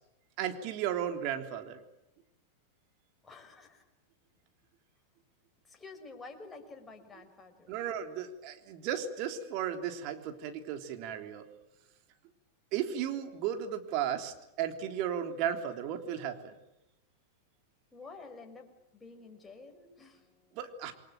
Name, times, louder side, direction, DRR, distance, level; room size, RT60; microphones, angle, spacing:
voice 1, 0.4-1.8 7.7-11.4 12.7-16.6 20.5-20.9, right 9 dB, 45° right, 6 dB, 3.5 m, -35 dB
voice 2, 3.2-3.8 5.7-7.8 17.9-20.6, left 3 dB, 15° left, 4 dB, 5.8 m, -50 dB
28.5 x 23.5 x 9.0 m, 0.88 s
figure-of-eight pair, 95°, 0 cm